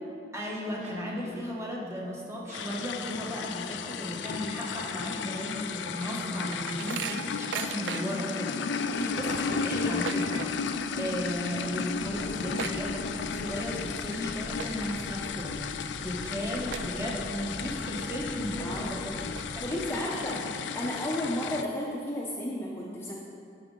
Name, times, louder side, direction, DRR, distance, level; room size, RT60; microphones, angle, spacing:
voice 1, 0.3-8.6 9.2-15.6 16.0-19.2 19.5-20.4, equal, 15° right, -3 dB, 1.2 m, -35 dB
sound 1, 0.8-19.9, right 1 dB, 40° right, 0.8 m, -47 dB
sound 2, 2.5-21.6, left 6 dB, 70° left, 0.4 m, -34 dB
sound 3, 5.9-8.3 8.7-8.8 9.1-10.8 11.1-11.4 11.7-11.8 12.1-13.5 13.9-14.2 14.5-15.1 15.6-15.7 16.2-16.3 16.7-17.4 17.9-18.0 18.7-18.8 19.2-20.1, right 9 dB, 70° right, 0.3 m, -39 dB
voice 2, 8.9-9.3 18.6-18.9 19.6-20.4 20.7-23.1, left 1 dB, 15° left, -4 dB, 0.7 m, -33 dB
10.5 x 6.2 x 3.8 m, 2.4 s
head